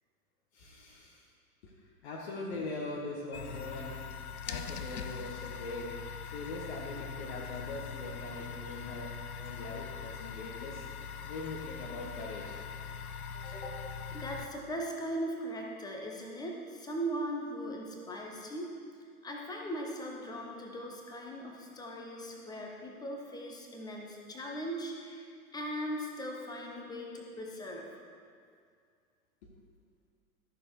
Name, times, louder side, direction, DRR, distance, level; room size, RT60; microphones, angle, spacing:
voice 1, 0.5-1.2 1.6-1.7 2.0-5.9 6.3-9.1 9.4-10.8 11.2-12.5 13.3-13.5, left 2 dB, 45° left, -2 dB, 1.4 m, -42 dB
sound 1, 3.3-14.5, left 6 dB, 70° left, 0.7 m, -42 dB
voice 2, 13.5-18.7 19.2-27.9, equal, 10° left, 0 dB, 1.1 m, -39 dB
13.5 x 6.5 x 4.8 m, 2.2 s
figure-of-eight pair, 100°, 45 cm